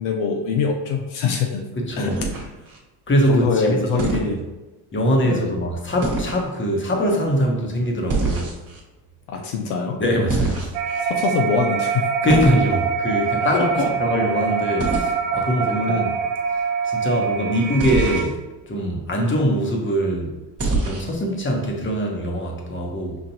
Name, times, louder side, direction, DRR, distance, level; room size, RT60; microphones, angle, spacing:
voice 1, 0.0-1.6 2.0-2.2 3.3-4.4 5.2-5.4 9.3-10.0 11.0-12.1 13.5-13.9, left 5 dB, 80° left, 2 dB, 0.7 m, -24 dB
voice 2, 1.8-2.2 3.1-4.4 4.9-8.5 10.0-10.7 12.2-16.1 16.8-18.4 18.7-20.4 20.8-23.2, equal, 25° left, 1 dB, 1.0 m, -22 dB
sound 1, 2.1-2.8 4.0-4.3 6.0-6.4 8.1-8.8 10.3-11.0 12.3-12.6 14.8-15.1 17.8-18.3 20.6-21.2, right 2 dB, 30° right, 1.2 m, -24 dB
sound 2, 10.7-18.2, right 6 dB, 70° right, 0.7 m, -24 dB
5.6 x 2.4 x 2.8 m, 1.1 s
supercardioid pair, 90°, 49 cm